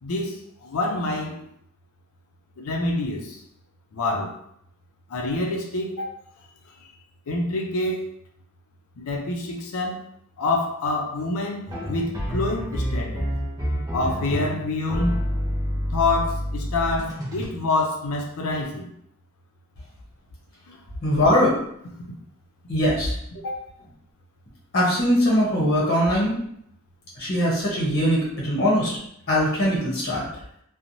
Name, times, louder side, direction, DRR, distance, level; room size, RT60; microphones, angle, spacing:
voice 1, 0.0-1.5 2.6-3.4 3.9-4.3 5.1-6.1 7.3-8.1 9.0-10.0 10.4-13.3 13.9-15.1 15.9-18.9 23.4-23.5, left 2 dB, 80° left, 0 dB, 0.5 m, -26 dB
sound 1, 11.7-17.5, equal, 15° right, 0.5 m, -28 dB
voice 2, 21.0-21.6 22.7-23.1 23.4-23.5 24.7-26.3 27.2-28.9 29.3-30.3, equal, 45° left, -5 dB, 0.8 m, -21 dB
2.9 x 2.1 x 2.6 m, 0.71 s
head